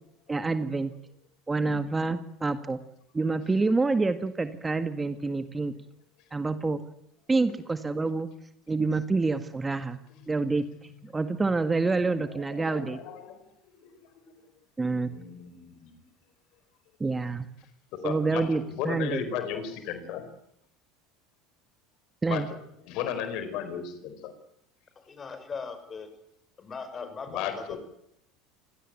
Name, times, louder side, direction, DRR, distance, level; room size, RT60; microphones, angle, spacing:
voice 1, 0.3-0.9 1.5-2.8 3.1-5.7 6.3-6.8 7.3-8.3 8.7-10.0 10.3-10.7 11.0-13.0 14.8-15.1 17.0-17.5 18.0-19.2 22.2-22.5, right 3 dB, 15° right, 10 dB, 1.8 m, -27 dB
voice 2, 12.3-13.5 13.8-13.9 14.3-14.4 14.8-16.0 17.9-20.3 22.3-22.4 22.9-24.3 27.3-27.8, left 8 dB, 60° left, 10 dB, 4.5 m, -35 dB
voice 3, 25.0-26.1 26.6-27.8, left 5 dB, 30° left, 10 dB, 6.3 m, -39 dB
26.5 x 18.0 x 9.2 m, 0.77 s
hypercardioid pair, 80°, 0 cm